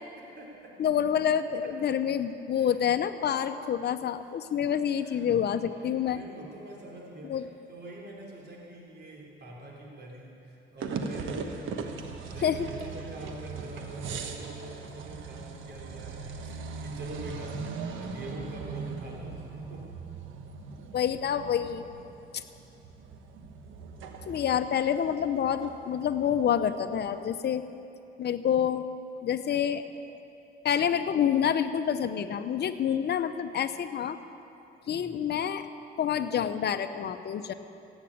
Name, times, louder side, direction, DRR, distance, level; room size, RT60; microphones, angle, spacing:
voice 1, 0.1-0.8 1.6-1.7 2.6-2.8 4.2-4.3 5.0-5.4 5.7-19.9 34.9-35.2, right 1 dB, 60° right, -2 dB, 3.9 m, -44 dB
voice 2, 0.8-6.2 7.2-7.4 12.4-12.7 20.9-21.8 22.3-22.4 24.3-27.6 28.2-28.9 29.2-29.8 30.6-34.2 34.9-35.7 36.0-37.5, left 8 dB, 55° left, 10 dB, 0.8 m, -27 dB
sound 1, 10.8-27.2, right 5 dB, 80° right, 1.2 m, -40 dB
15.5 x 9.0 x 8.6 m, 2.7 s
cardioid pair, 90°, 20 cm